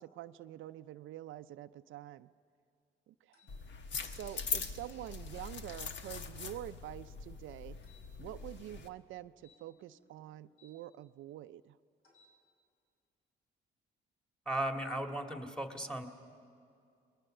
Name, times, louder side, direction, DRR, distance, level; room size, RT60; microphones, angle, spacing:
voice 1, 0.0-2.3 3.1-3.4 4.1-7.8 8.2-11.8, right 13 dB, 80° right, 11 dB, 0.5 m, -47 dB
sound 1, 3.3-3.6 5.6-5.9 7.8-8.1 9.4-10.8 12.0-12.4, left 4 dB, 85° left, 5.9 m, -66 dB
sound 2, 3.5-8.9, left 5 dB, 65° left, 1.3 m, -42 dB
voice 2, 14.5-16.1, right 1 dB, 5° left, 4 dB, 2.1 m, -36 dB
28.5 x 21.5 x 6.6 m, 2.4 s
cardioid pair, 90°, 20 cm